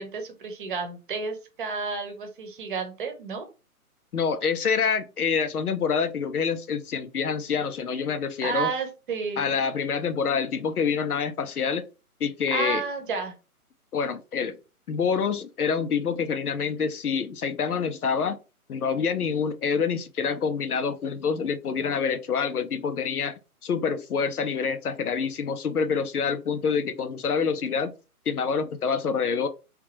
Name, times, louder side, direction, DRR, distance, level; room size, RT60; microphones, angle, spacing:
voice 1, 0.0-3.5 8.4-9.5 12.5-13.3, right 5 dB, 35° right, 0.9 m, -31 dB
voice 2, 4.1-8.7 9.4-11.8 12.2-12.8 13.9-14.6 14.9-18.4 18.7-23.3 23.6-27.9 28.3-29.5, left 6 dB, 75° left, 0.9 m, -26 dB
3.5 x 2.8 x 3.2 m
figure-of-eight pair, 145°, 45 cm